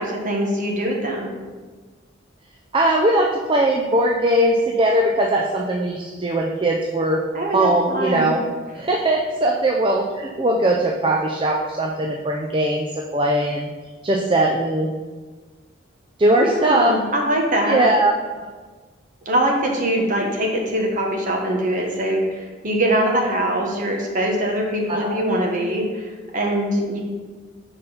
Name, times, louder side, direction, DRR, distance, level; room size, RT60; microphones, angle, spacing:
voice 1, 0.0-1.3 7.3-8.3 16.4-17.9 19.2-27.0, right 1 dB, 40° right, 0 dB, 1.1 m, -22 dB
voice 2, 2.7-7.2 7.5-8.4 8.7-13.7 14.0-14.9 16.2-17.0 17.6-18.1 24.9-25.2, right 1 dB, 25° right, 0 dB, 0.4 m, -20 dB
5.0 x 4.3 x 5.6 m, 1.4 s
head